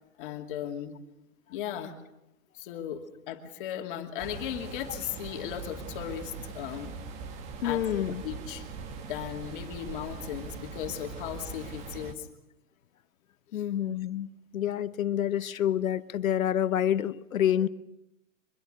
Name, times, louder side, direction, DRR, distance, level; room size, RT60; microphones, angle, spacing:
voice 1, 0.2-1.0 1.5-1.9 2.5-6.9 7.6-8.7 9.1-12.3 13.5-13.6, left 10 dB, 40° left, 4 dB, 2.6 m, -37 dB
sound 1, 4.2-12.1, right 5 dB, 15° right, 1.0 m, -41 dB
voice 2, 7.6-8.2 13.5-17.7, left 10 dB, 75° left, 14 dB, 1.1 m, -28 dB
24.0 x 22.5 x 6.6 m, 0.87 s
hypercardioid pair, 155°, 41 cm